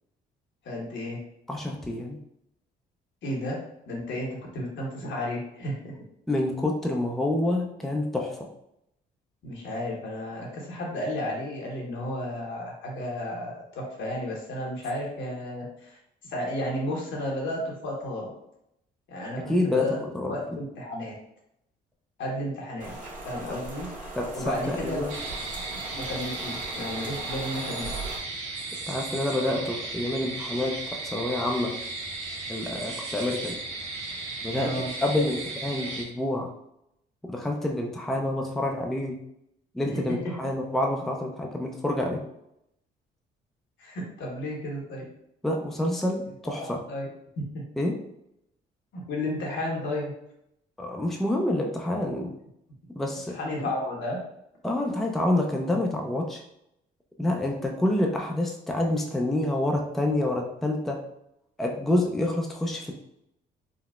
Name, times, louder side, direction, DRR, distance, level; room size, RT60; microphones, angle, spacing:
voice 1, 0.6-1.2 3.2-3.6 3.9-4.3 4.5-5.9 9.4-18.3 19.1-20.0 20.3-21.1 22.2-22.9 23.2-23.9 24.3-25.0 25.7-27.9 34.6-34.9 39.8-40.3 43.8-45.1 46.6-47.1 47.5-47.6 49.1-50.1 53.3-54.2, left 1 dB, 65° left, -2 dB, 1.1 m, -33 dB
voice 2, 1.5-2.2 6.3-8.5 19.5-20.3 24.2-24.3 24.7-25.1 28.9-30.8 31.0-31.7 32.5-33.6 34.4-34.7 35.0-36.5 37.2-39.2 39.7-42.2 45.4-46.8 47.8-48.0 50.8-52.3 52.9-53.7 54.6-56.4 57.2-61.0 61.6-62.9, left 1 dB, ahead, 1 dB, 0.5 m, -27 dB
Rain, 22.8-28.2, right 2 dB, 40° right, 1.2 m, -39 dB
sound 1, 25.1-36.0, right 3 dB, 80° right, 0.7 m, -35 dB
3.8 x 2.1 x 2.3 m, 0.80 s
supercardioid pair, 60°, 20 cm